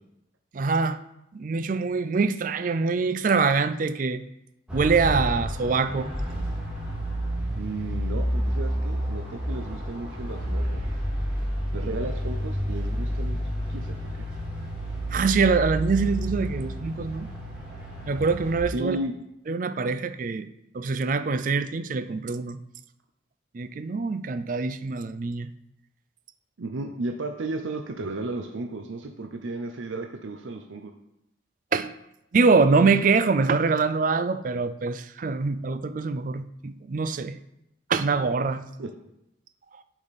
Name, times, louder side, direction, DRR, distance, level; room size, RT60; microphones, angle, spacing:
voice 1, 0.5-1.0 1.3-4.2 4.7-6.1 15.1-17.3 18.1-19.0 19.5-20.5 20.7-22.6 23.5-25.5 31.7-31.9 32.3-37.4 37.9-38.6, right 4 dB, 45° right, 12 dB, 0.4 m, -24 dB
sound 1, 4.7-18.6, equal, 5° right, 2.1 m, -30 dB
voice 2, 7.6-10.8 11.7-14.3 18.7-19.1 26.6-30.9 38.8-38.9, right 2 dB, 90° right, 4 dB, 0.6 m, -34 dB
8.6 x 5.0 x 4.1 m, 0.85 s
head